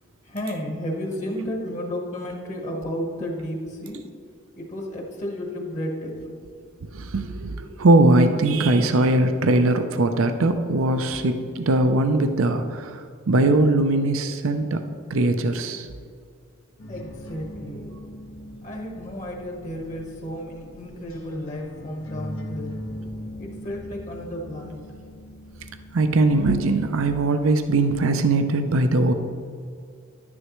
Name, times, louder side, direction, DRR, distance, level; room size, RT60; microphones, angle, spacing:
voice 1, 0.2-4.1 4.6-6.4 16.9-18.0 18.6-22.8 23.4-24.8, equal, 35° left, 1 dB, 1.3 m, -32 dB
voice 2, 6.9-14.8 15.1-15.9 25.9-29.1, right 2 dB, 75° right, 8 dB, 0.6 m, -20 dB
sound 1, 16.8-26.6, left 1 dB, 80° left, 1.4 m, -40 dB
11.0 x 9.7 x 3.1 m, 2.2 s
head